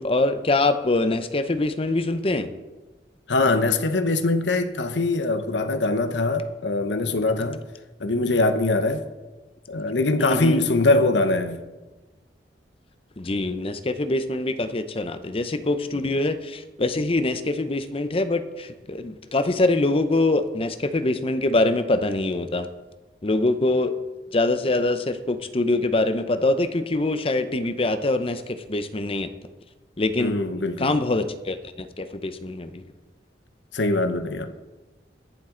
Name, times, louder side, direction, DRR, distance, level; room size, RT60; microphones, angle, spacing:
voice 1, 0.0-2.5 10.2-10.7 13.2-22.7 23.2-23.9 24.3-29.3 30.0-30.4 30.8-32.7, left 2 dB, 30° left, 0.7 m, -24 dB
voice 2, 3.3-7.6 8.0-9.0 9.7-11.6 30.2-31.0 33.7-34.5, left 2 dB, 90° left, 0.9 m, -22 dB
22.5 x 7.5 x 3.9 m
head